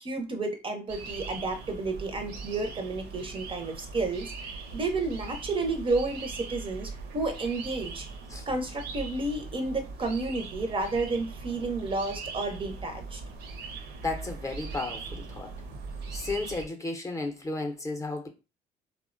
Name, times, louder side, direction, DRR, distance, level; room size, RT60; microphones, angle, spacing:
voice 1, 0.0-8.1 8.5-13.2, right 3 dB, 30° right, 0.5 m, -31 dB
sound 1, 0.9-16.6, right 4 dB, 80° right, 0.7 m, -40 dB
voice 2, 14.0-15.5 16.1-18.3, left 2 dB, 20° left, 0.6 m, -33 dB
3.5 x 2.1 x 2.5 m
cardioid pair, 110°, 17 cm